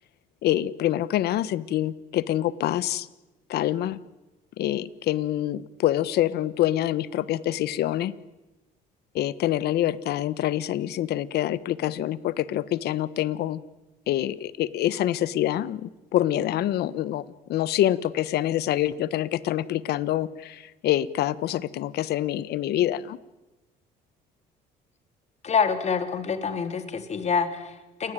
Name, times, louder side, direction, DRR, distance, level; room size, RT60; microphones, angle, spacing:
voice 1, 0.4-3.1 3.5-4.0 4.6-8.1 9.1-13.6 14.1-23.2, left 13 dB, 70° left, 17 dB, 1.3 m, -26 dB
voice 2, 25.4-28.1, left 6 dB, 40° left, 8 dB, 3.8 m, -26 dB
29.5 x 21.5 x 9.3 m, 1.0 s
cardioid pair, 110°, 17 cm